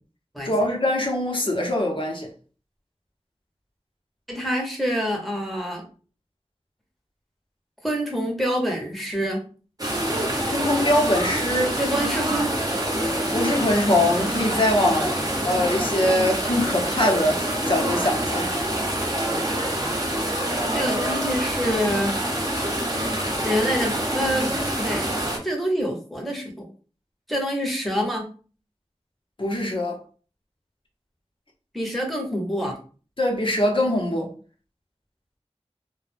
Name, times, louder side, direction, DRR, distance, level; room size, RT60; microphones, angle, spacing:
voice 1, 0.4-2.3 10.5-11.8 13.3-15.2 15.4-18.5 29.4-30.0 33.2-34.3, left 1 dB, 50° left, 0.8 m, -23 dB
voice 2, 4.3-5.8 7.8-9.5 11.8-12.5 20.7-22.2 23.4-24.5 24.8-25.0 25.4-26.7 27.3-28.3 31.7-32.8, equal, ahead, 0.9 m, -26 dB
sound 1, 9.8-25.4, right 1 dB, 35° right, 0.8 m, -26 dB
2.3 x 2.2 x 3.2 m
wide cardioid pair, 40°, 11 cm